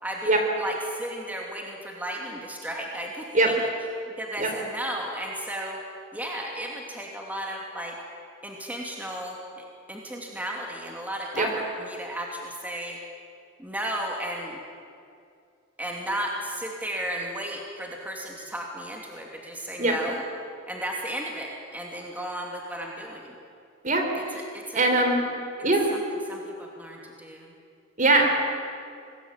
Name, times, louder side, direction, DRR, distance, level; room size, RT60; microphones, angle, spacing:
voice 1, 0.0-3.6 4.1-5.8 6.1-8.0 8.4-13.0 13.6-14.6 15.8-20.2 20.7-23.4 24.1-24.9 25.5-27.5, right 1 dB, 10° right, -1 dB, 2.8 m, -34 dB
voice 2, 24.7-25.2 25.6-25.9 28.0-28.2, right 2 dB, 40° right, 4 dB, 3.9 m, -21 dB
25.0 x 20.5 x 9.0 m, 2.4 s
head